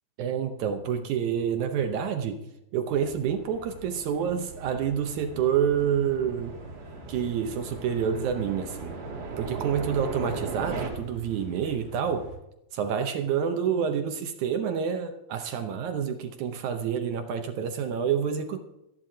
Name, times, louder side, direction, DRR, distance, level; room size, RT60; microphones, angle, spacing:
voice 1, 0.2-2.4 2.7-6.5 7.1-9.0 9.4-12.3 12.7-18.6, right 8 dB, 75° right, 7 dB, 1.7 m, -28 dB
sound 1, 2.9-10.9, right 4 dB, 60° right, 3.8 m, -38 dB
sound 2, 5.7-12.4, right 2 dB, 75° left, 7.4 m, -47 dB
28.0 x 11.0 x 2.8 m, 0.88 s
omnidirectional pair, 4.4 m